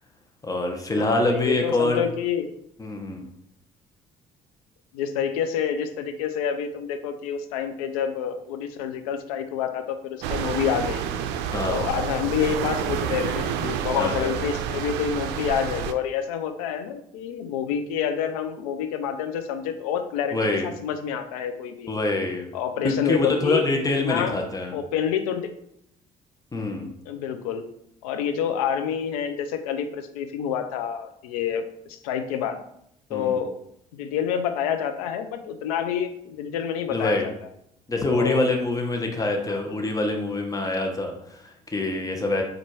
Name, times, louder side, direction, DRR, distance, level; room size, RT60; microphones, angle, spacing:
voice 1, 0.4-2.1 2.8-3.2 11.5-11.9 14.0-14.3 20.3-20.7 21.9-22.5 22.8-24.8 26.5-26.9 33.1-33.4 36.9-37.3 37.9-42.4, left 2 dB, 20° left, 2 dB, 0.9 m, -25 dB
voice 2, 1.0-2.5 4.9-11.0 11.7-20.4 20.6-22.0 22.5-23.7 24.0-24.3 24.7-25.5 27.1-27.6 28.0-32.6 33.1-33.6 33.9-37.3 38.1-38.4 39.5-39.6, left 8 dB, 90° left, 8 dB, 0.5 m, -28 dB
sound 1, 10.2-15.9, right 8 dB, 75° right, 0.4 m, -29 dB
4.3 x 2.5 x 4.6 m, 0.75 s
hypercardioid pair, 65°, 18 cm